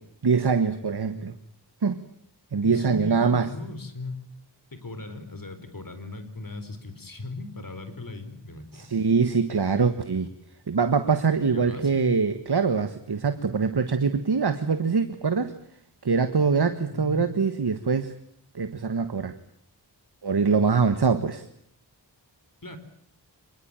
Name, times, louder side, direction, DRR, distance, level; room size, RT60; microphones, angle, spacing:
voice 1, 0.2-1.3 1.8-2.0 2.5-3.5 8.7-10.3 10.7-15.5 16.0-18.1 18.5-19.3 20.2-21.5, right 5 dB, 65° right, 10 dB, 1.6 m, -23 dB
voice 2, 2.6-4.2 4.7-8.9 11.5-12.2 16.9-17.3 22.6-22.8, left 2 dB, 50° left, 10 dB, 4.5 m, -38 dB
27.0 x 21.0 x 9.0 m, 0.67 s
wide cardioid pair, 75°, 43 cm